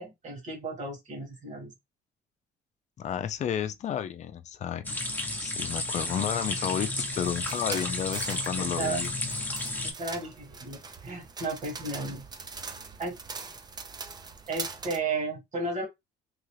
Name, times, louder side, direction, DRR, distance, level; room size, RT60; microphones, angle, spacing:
voice 1, 0.0-1.7 8.6-9.0 9.8-12.3 13.0-13.2 14.5-15.9, right 3 dB, 45° right, 1.9 m, -34 dB
voice 2, 3.0-4.9 5.4-9.1, left 9 dB, 45° left, 0.5 m, -32 dB
sound 1, 4.8-9.9, left 2 dB, 10° left, 0.9 m, -32 dB
sound 2, 7.1-15.0, right 4 dB, 25° right, 0.5 m, -42 dB
3.2 x 2.4 x 3.2 m
cardioid pair, 110°, 17 cm